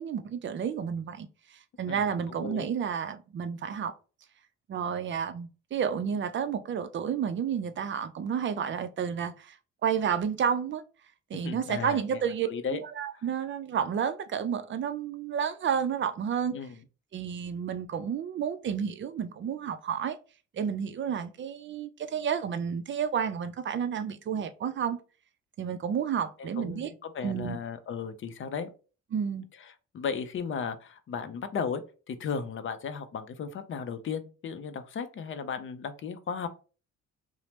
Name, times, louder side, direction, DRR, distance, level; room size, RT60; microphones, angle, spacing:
voice 1, 0.0-3.9 4.7-9.6 9.8-10.8 11.3-16.5 17.1-20.2 20.5-25.0 25.6-26.9 27.2-27.6 29.1-29.5, right 7 dB, 40° right, 0.4 m, -31 dB
voice 2, 1.9-2.7 11.3-12.2 12.5-12.8 13.1-13.2 16.5-16.8 26.4-28.7 29.6-36.5, left 6 dB, 45° left, 0.5 m, -35 dB
2.8 x 2.0 x 3.1 m
cardioid pair, 90°, 30 cm